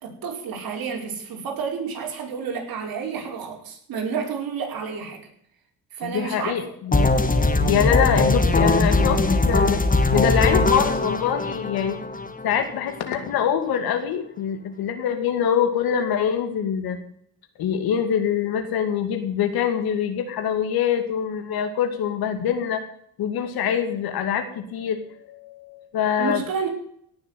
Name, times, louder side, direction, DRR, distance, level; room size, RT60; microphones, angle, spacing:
voice 1, 0.0-5.2 5.9-6.5 26.2-26.7, right 6 dB, 75° right, 1 dB, 4.9 m, -30 dB
voice 2, 6.0-7.1 7.6-9.8 10.1-12.0 12.4-17.0 17.6-22.8 23.2-26.4, left 8 dB, 85° left, 7 dB, 2.5 m, -24 dB
sound 1, 6.9-12.9, left 2 dB, 25° left, 2.3 m, -20 dB
17.5 x 7.0 x 9.4 m, 0.68 s
cardioid pair, 90°, 36 cm